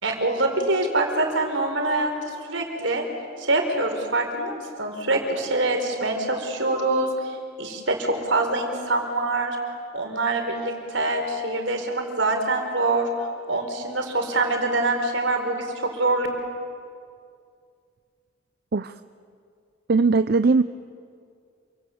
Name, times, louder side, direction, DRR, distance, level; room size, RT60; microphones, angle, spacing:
voice 1, 0.0-3.1 3.4-9.6 9.9-13.1 13.5-16.3, right 2 dB, 75° right, 4 dB, 4.3 m, -25 dB
voice 2, 19.9-20.6, right 4 dB, 55° right, 12 dB, 0.6 m, -19 dB
28.0 x 24.5 x 7.9 m, 2.3 s
head